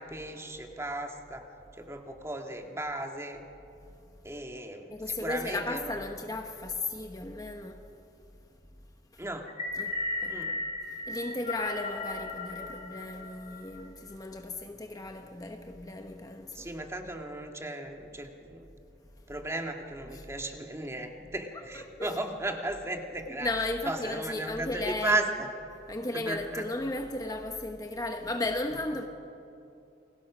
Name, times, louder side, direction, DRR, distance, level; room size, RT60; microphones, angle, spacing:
voice 1, 0.0-1.4 1.8-3.4 4.2-6.0 9.2-9.5 10.3-10.5 16.5-18.7 19.3-23.5 23.9-25.3 26.3-26.7, right 2 dB, 15° right, 1.8 m, -35 dB
voice 2, 4.9-7.9 9.1-9.2 9.8-16.7 20.1-20.3 21.5-22.2 23.3-25.3 25.9-29.1, left 2 dB, 20° left, 1.1 m, -35 dB
sound 1, 9.5-13.8, left 2 dB, 40° left, 3.5 m, -35 dB
29.0 x 21.0 x 6.2 m
head